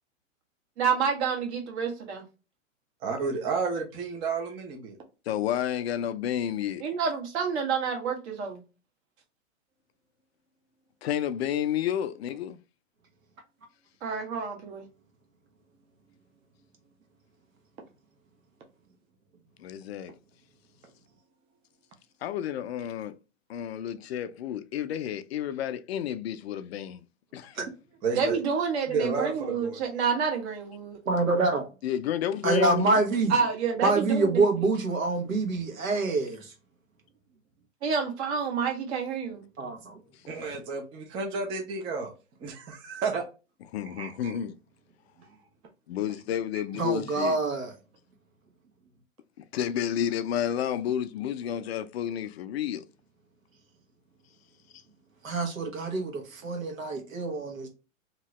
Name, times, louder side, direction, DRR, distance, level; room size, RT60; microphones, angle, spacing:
voice 1, 0.8-2.2 6.8-8.6 14.0-14.9 28.1-31.0 33.3-34.4 37.8-39.5, right 6 dB, 60° right, 1.4 m, -28 dB
voice 2, 3.0-4.9 28.0-28.4 28.9-29.8 40.3-42.1 42.4-43.2 43.8-44.4 46.5-46.6, right 4 dB, 15° right, 0.4 m, -31 dB
voice 3, 5.3-6.8 11.0-12.6 19.6-20.1 22.2-23.1 23.5-27.0 27.3-27.6 31.8-33.0 43.7-44.5 45.9-47.4 49.5-52.9, left 10 dB, 55° left, 0.4 m, -30 dB
voice 4, 31.1-31.6 32.4-33.3 33.8-36.5 39.6-39.9 46.8-47.7 55.2-57.7, right 3 dB, 85° right, 1.4 m, -26 dB
2.9 x 2.7 x 3.1 m
hypercardioid pair, 125°, 39 cm